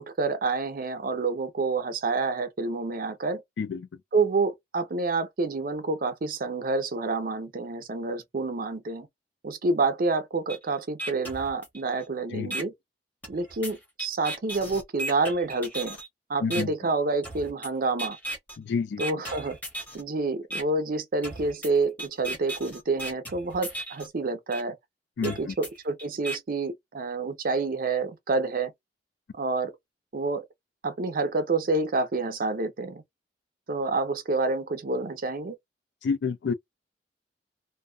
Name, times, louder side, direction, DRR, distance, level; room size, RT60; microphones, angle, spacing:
voice 1, 0.0-3.4 4.1-9.1 9.4-12.7 13.3-16.0 16.3-18.2 19.0-19.6 19.9-24.8 25.2-28.7 29.3-29.7 30.1-30.4 30.8-33.0 33.7-35.6, right 3 dB, 55° right, 0.6 m, -28 dB
voice 2, 3.6-3.9 12.3-12.6 16.4-16.7 18.6-19.0 25.2-25.5 36.0-36.5, left 5 dB, 70° left, 0.3 m, -29 dB
sound 1, 10.5-10.6 11.0-12.0 12.5-12.6 13.2-16.1 16.5-16.6 17.2-17.7 18.0-18.6 19.0-20.0 20.5-20.6 21.2-24.1 24.5-24.6 25.2-26.4, right 1 dB, 10° left, 0.8 m, -36 dB
2.5 x 2.2 x 2.2 m
head